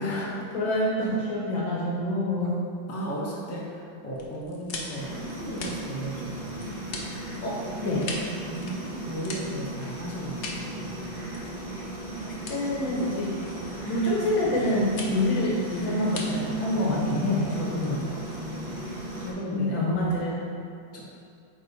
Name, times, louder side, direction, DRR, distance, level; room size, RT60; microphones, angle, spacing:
voice 1, 0.0-2.6 7.4-8.1 12.1-13.4 13.8-18.2 19.5-20.4, left 1 dB, 80° left, -4 dB, 1.9 m, -27 dB
voice 2, 2.9-6.6 8.4-11.1 18.4-18.8 19.2-19.7 20.9-21.0, right 1 dB, 15° left, -5 dB, 0.6 m, -36 dB
sound 1, 4.1-18.8, left 3 dB, 60° left, 0.7 m, -42 dB
sound 2, 4.9-19.3, right 1 dB, 85° right, 2.3 m, -37 dB
8.6 x 3.6 x 4.2 m, 2.5 s
omnidirectional pair, 2.1 m